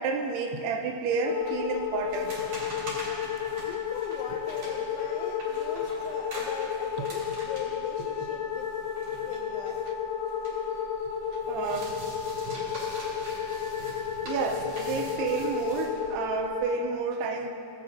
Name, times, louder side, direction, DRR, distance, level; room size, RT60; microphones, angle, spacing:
voice 1, 0.0-2.4 11.5-12.0 13.5-13.6 14.3-17.5, right 4 dB, 85° right, 3 dB, 2.8 m, -30 dB
sound 1, 1.2-16.6, left 7 dB, 65° left, 2.2 m, -32 dB
sound 2, 2.1-10.8 11.1-15.9, right 1 dB, 40° right, 3.6 m, -43 dB
voice 2, 3.6-8.7 9.2-9.8, left 8 dB, 90° left, 3 dB, 2.6 m, -41 dB
17.5 x 9.1 x 2.7 m, 2.5 s
omnidirectional pair, 4.6 m